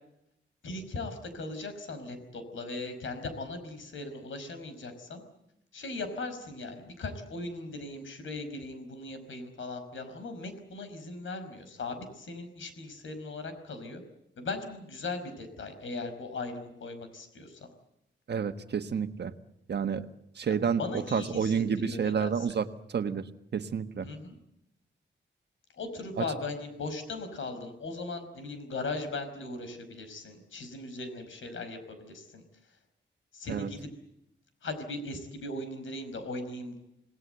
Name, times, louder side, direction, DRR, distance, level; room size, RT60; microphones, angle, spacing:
voice 1, 0.6-5.2 5.7-14.0 14.4-17.7 20.5-22.4 24.0-24.4 25.8-32.4 33.3-33.9 34.6-36.8, left 3 dB, 90° left, 9 dB, 5.3 m, -38 dB
voice 2, 18.3-19.3 19.7-20.1 20.3-23.3 23.5-24.1 26.2-26.3 33.5-33.7, right 6 dB, 60° right, 9 dB, 1.4 m, -30 dB
28.0 x 19.5 x 8.0 m, 0.82 s
wide cardioid pair, 150°, 20 cm